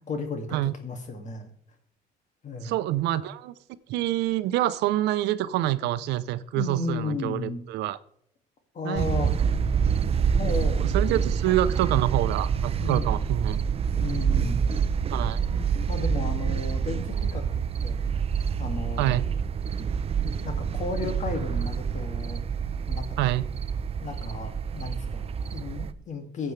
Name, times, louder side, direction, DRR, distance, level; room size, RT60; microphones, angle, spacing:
voice 1, 0.0-1.5 2.4-2.7 6.6-7.6 8.7-9.3 10.4-11.0 11.5-11.6 12.8-13.2 14.0-14.6 15.4-18.0 18.6-19.2 20.4-22.4 22.9-23.2 24.0-26.5, left 4 dB, 45° left, 6 dB, 2.3 m, -34 dB
voice 2, 2.6-3.5 3.9-8.0 8.8-9.1 10.8-13.6 15.1-15.4 19.0-19.2 23.2-23.4, right 14 dB, 85° right, 14 dB, 0.7 m, -26 dB
sound 1, 9.0-25.9, right 7 dB, 35° right, 0.7 m, -27 dB
15.0 x 7.9 x 3.3 m, 0.66 s
cardioid pair, 110°, 17 cm